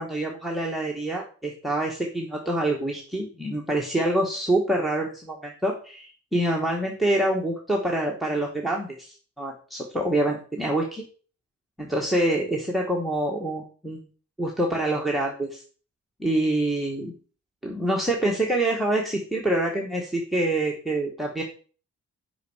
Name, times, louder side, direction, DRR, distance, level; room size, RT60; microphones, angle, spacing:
voice 1, 0.0-11.0 11.8-14.0 14.4-15.6 16.2-17.1 17.6-21.4, right 1 dB, ahead, 0 dB, 1.2 m, -26 dB
9.1 x 5.4 x 4.8 m, 0.40 s
wide cardioid pair, 155°, 29 cm